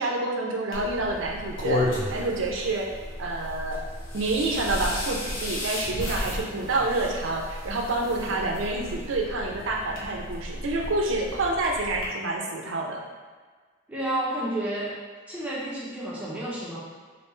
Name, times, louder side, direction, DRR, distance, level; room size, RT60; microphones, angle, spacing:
voice 1, 0.0-2.9 3.2-3.8 4.1-13.0, right 2 dB, 70° right, 1 dB, 0.5 m, -28 dB
sound 1, 0.7-12.1, left 1 dB, 70° left, 0.9 m, -33 dB
voice 2, 13.9-14.9 15.3-16.8, right 1 dB, 5° right, -8 dB, 0.7 m, -30 dB
3.2 x 2.7 x 3.1 m, 1.5 s
head